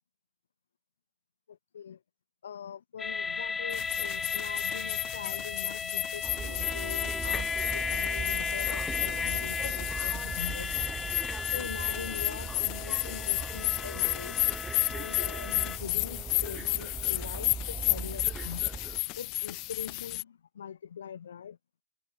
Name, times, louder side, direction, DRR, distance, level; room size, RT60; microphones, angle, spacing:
voice 1, 1.5-2.0 2.4-10.8 11.4-14.4 14.9-18.6 19.2-21.6, left 8 dB, 70° left, 7.4 m, -42 dB
sound 1, 3.0-15.8, left 5 dB, 15° left, 3.4 m, -35 dB
sound 2, 3.7-20.2, left 26 dB, 40° left, 0.7 m, -33 dB
sound 3, 6.2-19.0, right 5 dB, 15° right, 1.4 m, -40 dB
hypercardioid pair, 110°, 0 cm